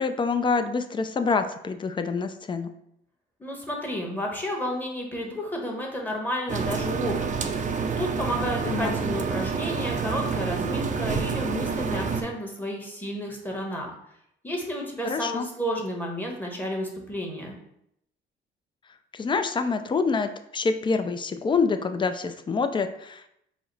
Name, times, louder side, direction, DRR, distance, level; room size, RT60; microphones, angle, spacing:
voice 1, 0.0-2.7 8.7-8.9 15.0-15.5 19.1-23.3, left 4 dB, 25° left, 8 dB, 0.4 m, -26 dB
voice 2, 3.4-13.9 14.4-17.5, equal, 10° left, 0 dB, 1.0 m, -31 dB
sound 1, 6.5-12.2, right 5 dB, 40° right, 0.5 m, -28 dB
4.9 x 2.0 x 3.9 m, 0.76 s
cardioid pair, 90°, 20 cm